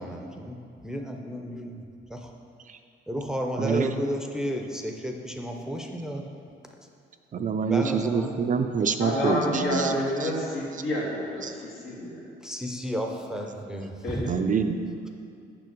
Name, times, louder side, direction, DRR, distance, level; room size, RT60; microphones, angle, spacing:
voice 1, 0.0-1.8 2.1-2.3 3.1-6.3 7.6-8.4 12.4-14.3, equal, 5° right, 2 dB, 0.6 m, -32 dB
voice 2, 3.6-4.0 7.3-10.0 10.2-10.3 11.4-11.5 14.3-14.8, right 6 dB, 40° right, 7 dB, 0.4 m, -26 dB
voice 3, 9.0-12.2 14.0-14.2, left 1 dB, 75° left, -5 dB, 1.9 m, -29 dB
6.7 x 5.9 x 5.1 m, 2.5 s
cardioid pair, 90°, 20 cm